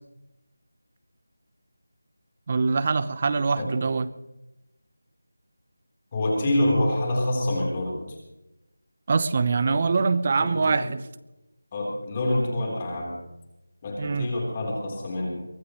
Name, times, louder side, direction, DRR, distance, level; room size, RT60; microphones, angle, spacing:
voice 1, 2.5-4.1 9.1-11.0 14.0-14.3, right 4 dB, 30° right, 14 dB, 0.8 m, -24 dB
voice 2, 6.1-8.2 9.6-10.1 10.4-10.8 11.7-13.2 13.8-15.4, left 1 dB, 25° left, -2 dB, 4.0 m, -27 dB
23.5 x 18.0 x 3.2 m, 0.96 s
figure-of-eight pair, 170°, 0 cm